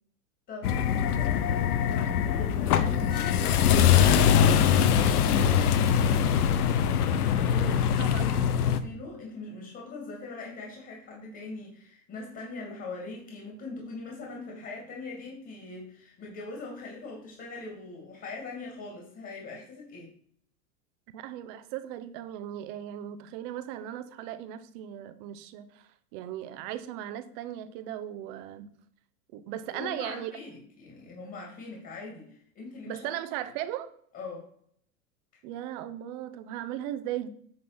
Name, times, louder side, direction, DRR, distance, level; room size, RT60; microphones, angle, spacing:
voice 1, 0.5-6.4 7.2-7.8 8.1-20.1 29.7-33.1 34.1-34.5 35.3-35.4, left 3 dB, 25° left, -1 dB, 2.5 m, -42 dB
sound 1, 0.6-8.8, left 8 dB, 85° left, 0.9 m, -23 dB
voice 2, 7.4-8.2 21.1-25.8 26.1-28.7 29.3-30.3 32.9-33.9 35.4-37.3, right 12 dB, 40° right, 11 dB, 0.9 m, -37 dB
9.6 x 3.9 x 6.1 m, 0.63 s
supercardioid pair, 145°, 44 cm